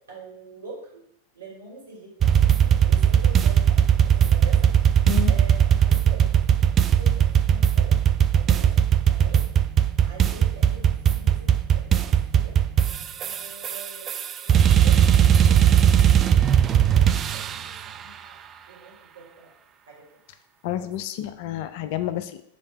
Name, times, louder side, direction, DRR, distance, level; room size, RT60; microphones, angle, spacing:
voice 1, 0.1-1.0 1.3-3.8 4.1-4.7 5.3-8.0 8.3-8.8 9.1-9.4 10.0-12.5 13.2-16.4 16.7-18.4 18.7-19.5 19.9-20.0 20.7-20.9, right 3 dB, 70° right, -4 dB, 2.6 m, -44 dB
sound 1, 2.2-17.8, right 9 dB, 25° right, 0.3 m, -19 dB
voice 2, 20.6-22.4, left 12 dB, 50° left, 11 dB, 0.4 m, -29 dB
5.2 x 3.6 x 5.5 m, 0.73 s
figure-of-eight pair, 90°, 0 cm